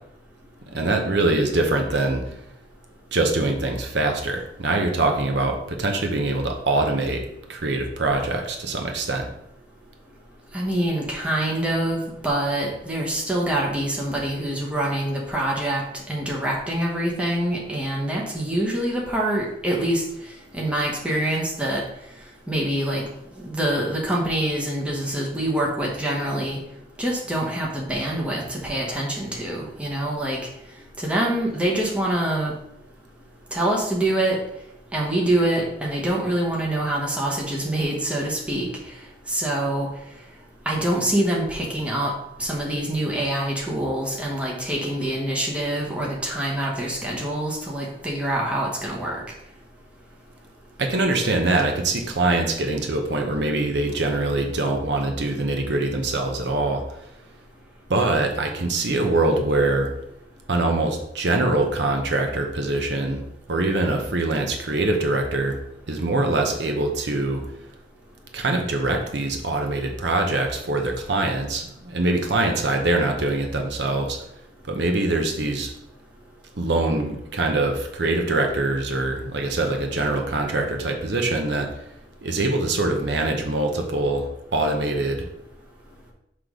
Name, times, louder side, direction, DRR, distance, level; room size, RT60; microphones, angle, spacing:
voice 1, 0.7-2.2 3.1-7.2 7.5-9.2 50.8-56.8 57.9-59.9 60.5-63.2 63.5-65.6 65.9-67.4 68.3-74.2 74.7-75.7 76.6-81.7 82.2-85.2, right 2 dB, 70° right, 3 dB, 0.8 m, -23 dB
voice 2, 10.5-15.8 16.1-20.0 20.5-21.8 22.5-23.0 23.4-26.6 27.0-30.4 31.0-32.5 33.5-34.4 34.9-38.7 39.3-39.9 40.6-42.1 42.4-49.2, right 1 dB, 5° right, -3 dB, 1.1 m, -25 dB
5.9 x 3.2 x 5.0 m, 0.80 s
head